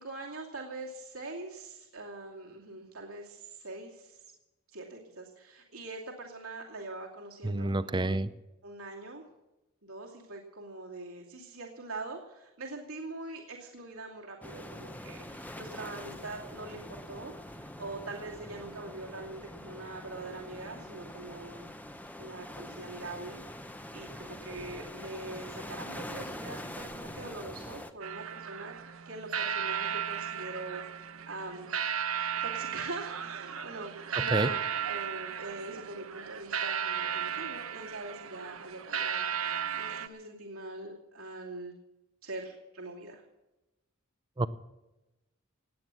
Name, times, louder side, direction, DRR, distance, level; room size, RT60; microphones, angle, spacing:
voice 1, 0.0-4.3 4.7-8.0 8.6-9.2 9.8-21.7 22.2-28.7 29.0-31.7 32.4-41.7 42.2-43.2, right 2 dB, 85° right, -1 dB, 2.6 m, -43 dB
voice 2, 7.4-8.3 34.2-34.5 44.4-44.5, right 2 dB, 20° right, 14 dB, 0.6 m, -28 dB
sound 1, 14.4-27.9, left 1 dB, 10° left, 0.9 m, -44 dB
sound 2, 28.0-40.1, right 8 dB, 70° right, 1.0 m, -35 dB
18.0 x 9.1 x 7.6 m, 1.0 s
head